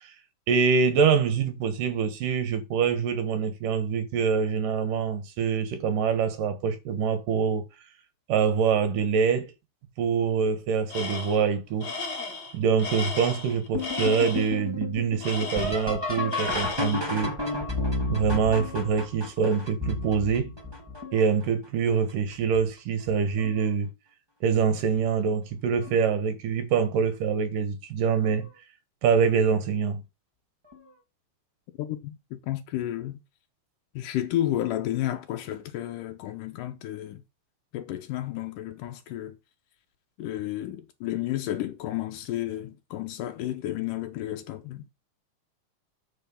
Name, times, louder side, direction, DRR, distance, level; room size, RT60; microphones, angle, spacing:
voice 1, 0.5-7.6 8.3-9.5 10.0-11.9 12.5-17.3 18.1-20.5 21.1-23.9 24.4-28.5 29.0-30.0, right 6 dB, 75° right, 3.2 m, -25 dB
Tools, 10.9-11.5 11.8-14.5 15.2-16.0 16.3-17.1, left 3 dB, 35° left, 2.2 m, -35 dB
sound 1, 13.7-21.4 22.1-22.6 23.1-23.7 25.0-25.1 25.8-26.1 28.3-28.4 30.7-30.8, left 2 dB, 10° right, 1.8 m, -32 dB
voice 2, 31.8-33.2 34.0-37.2 37.7-39.4 40.2-44.8, left 13 dB, 85° left, 2.4 m, -32 dB
9.2 x 5.3 x 5.7 m
omnidirectional pair, 3.9 m